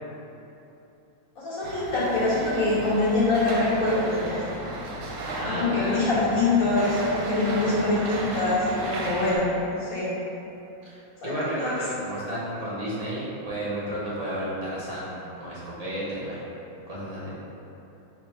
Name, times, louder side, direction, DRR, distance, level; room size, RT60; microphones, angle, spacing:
voice 1, 1.3-4.4 5.5-9.5 9.8-10.1 11.2-11.7, left 2 dB, 45° left, -9 dB, 1.5 m, -24 dB
sound 1, 1.6-9.4, right 1 dB, 80° right, 1.4 m, -34 dB
voice 2, 5.3-6.0 10.8-16.4 16.9-17.3, right 1 dB, 40° right, -8 dB, 1.2 m, -32 dB
3.5 x 3.0 x 4.6 m, 2.9 s
omnidirectional pair, 2.3 m